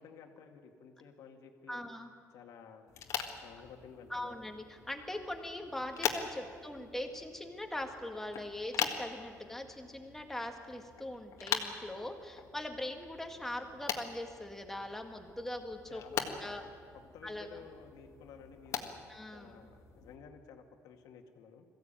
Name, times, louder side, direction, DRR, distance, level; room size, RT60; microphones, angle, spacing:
voice 1, 0.0-1.9 2.3-2.9 3.4-4.5 15.9-16.7 17.1-21.7, left 7 dB, 90° left, 4 dB, 2.1 m, -53 dB
voice 2, 1.7-2.1 4.1-16.6 17.2-17.6 19.1-19.7, left 1 dB, 5° left, 4 dB, 1.9 m, -41 dB
sound 1, 2.9-20.2, left 8 dB, 65° left, 1.7 m, -42 dB
21.5 x 15.5 x 8.9 m, 2.1 s
cardioid pair, 145°, 6 cm